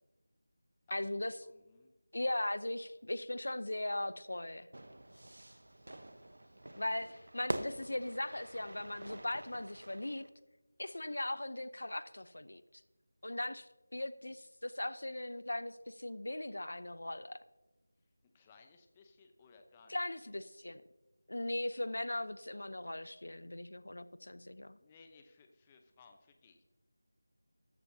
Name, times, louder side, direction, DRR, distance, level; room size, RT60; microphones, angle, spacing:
voice 1, 0.9-1.4 2.1-4.7 6.8-10.3 10.8-12.8 13.2-17.4 19.9-20.8 21.3-24.8, left 1 dB, 75° left, 15 dB, 0.6 m, -39 dB
voice 2, 1.4-1.9 18.2-20.3 24.8-26.6, left 4 dB, 15° left, 5 dB, 0.8 m, -62 dB
Fire / Fireworks, 4.7-10.3, right 1 dB, 80° right, 1.0 m, -45 dB
14.0 x 14.0 x 2.8 m, 1.1 s
figure-of-eight pair, 170°, 0 cm